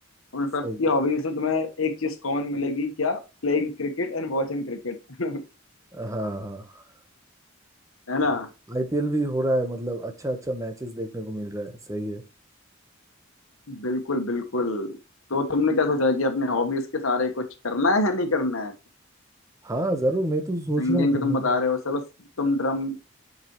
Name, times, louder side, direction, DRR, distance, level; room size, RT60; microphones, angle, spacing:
voice 1, 0.3-5.4 8.1-8.5 13.7-15.0 15.3-18.7 20.8-22.0 22.4-23.0, left 2 dB, 75° left, 1.3 m, -25 dB
voice 2, 5.9-6.8 8.7-12.2 19.6-21.6, right 1 dB, 15° right, 1.0 m, -28 dB
8.2 x 5.3 x 3.0 m
head